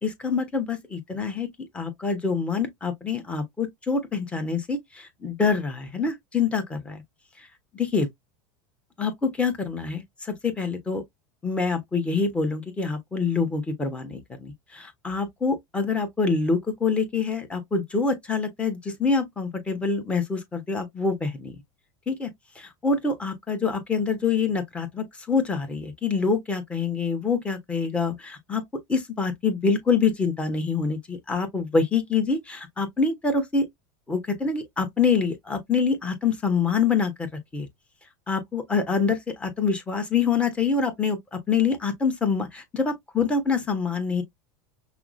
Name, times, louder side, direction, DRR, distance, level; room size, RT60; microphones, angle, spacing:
voice 1, 0.0-7.0 7.7-8.1 9.0-11.0 11.4-21.5 22.1-22.3 22.6-28.6 28.9-33.7 34.1-37.7 38.3-44.2, left 5 dB, 10° left, 1.1 m, -26 dB
5.6 x 2.0 x 2.5 m
supercardioid pair, 155°, 10 cm